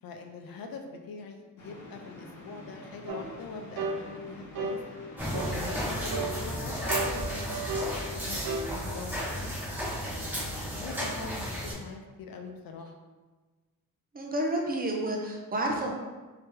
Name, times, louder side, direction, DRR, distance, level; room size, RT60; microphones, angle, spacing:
voice 1, 0.0-4.8 5.3-9.5 10.2-12.9, left 4 dB, 75° left, 3 dB, 0.6 m, -43 dB
sound 1, 1.6-7.0, left 1 dB, 55° left, 1.0 m, -47 dB
sound 2, 3.1-3.2 3.8-4.0 4.6-4.8 5.3-5.6 6.1-6.4 6.9-7.9 8.4-8.7, right 3 dB, 85° right, 0.6 m, -32 dB
sound 3, 5.2-11.7, equal, 5° right, 1.1 m, -33 dB
voice 2, 14.1-15.9, right 1 dB, 25° right, 0 dB, 0.5 m, -30 dB
3.3 x 2.8 x 3.2 m, 1.3 s
wide cardioid pair, 135°, 35 cm